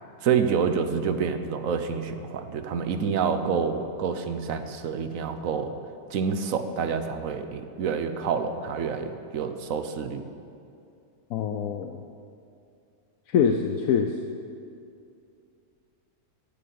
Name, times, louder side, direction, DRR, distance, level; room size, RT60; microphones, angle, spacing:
voice 1, 0.2-5.7 6.1-10.2, right 6 dB, 65° right, 8 dB, 1.2 m, -28 dB
voice 2, 11.3-12.0 13.3-14.2, left 7 dB, 75° left, 5 dB, 1.1 m, -24 dB
11.5 x 10.5 x 6.9 m, 2.5 s
omnidirectional pair, 1.6 m